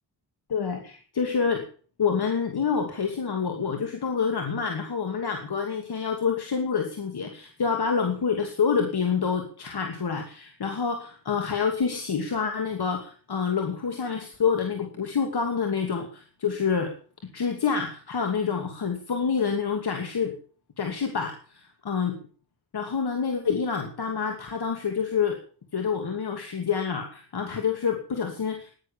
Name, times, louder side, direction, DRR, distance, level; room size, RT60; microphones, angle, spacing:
voice 1, 0.5-1.6 2.0-16.9 17.3-20.3 20.8-22.2 22.7-25.4 25.7-28.7, left 6 dB, 80° left, 3 dB, 2.7 m, -27 dB
16.5 x 11.0 x 7.3 m, 0.42 s
wide cardioid pair, 90°, 38 cm